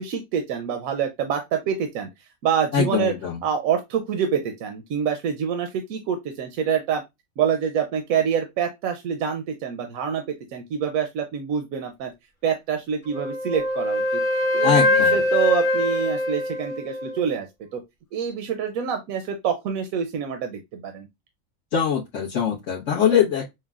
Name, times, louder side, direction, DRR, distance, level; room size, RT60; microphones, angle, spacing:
voice 1, 0.0-3.1 3.4-7.0 7.4-12.1 12.4-14.2 14.5-17.5 17.7-17.8 18.1-21.1, right 7 dB, 85° right, 1.0 m, -26 dB
voice 2, 2.7-3.4 14.6-15.2 21.7-23.4, left 8 dB, 65° left, 1.4 m, -22 dB
Wind instrument woodwind instrument, 13.1-17.3, left 2 dB, 30° left, 0.9 m, -23 dB
6.2 x 2.2 x 2.3 m
omnidirectional pair, 1.4 m